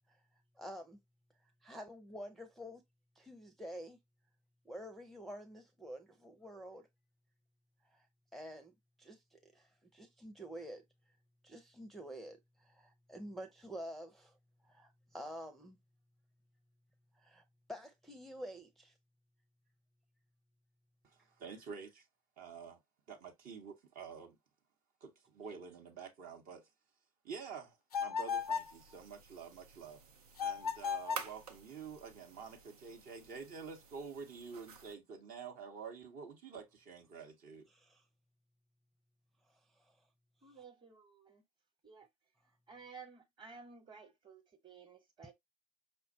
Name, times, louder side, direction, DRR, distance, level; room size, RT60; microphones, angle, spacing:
voice 1, 0.6-1.0 1.4-2.8 3.2-4.0 4.6-6.9 7.8-8.1 8.3-8.7 9.0-10.8 11.4-14.4 14.6-15.8 17.1-17.4 17.7-18.9 37.7-38.0 39.8-39.9 45.2-45.3, equal, ahead, 0.6 m, -49 dB
voice 2, 21.0-22.0 22.4-22.8 23.1-24.4 25.0-26.7 27.2-30.0 30.4-37.7, right 6 dB, 50° right, 0.8 m, -48 dB
sound 1, 27.9-28.8 30.4-31.3, left 6 dB, 85° left, 0.4 m, -36 dB
sound 2, 28.4-35.0, right 6 dB, 85° right, 0.6 m, -52 dB
voice 3, 40.4-41.4 41.8-42.1 42.7-45.3, right 5 dB, 25° right, 1.1 m, -54 dB
5.2 x 2.1 x 2.6 m
figure-of-eight pair, 65°, 19 cm